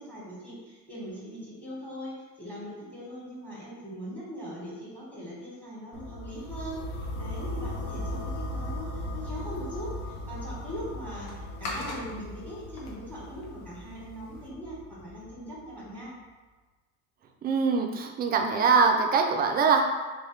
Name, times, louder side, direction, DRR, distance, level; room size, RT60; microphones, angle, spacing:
voice 1, 0.0-16.1, equal, 5° left, -5 dB, 1.2 m, -41 dB
sound 1, 5.9-15.9, left 1 dB, 55° left, 0.7 m, -38 dB
sound 2, 9.4-14.5, left 2 dB, 90° left, 0.9 m, -43 dB
voice 2, 17.4-19.8, right 5 dB, 25° right, 3 dB, 0.3 m, -23 dB
3.0 x 2.8 x 3.1 m, 1.3 s
supercardioid pair, 95°, 43 cm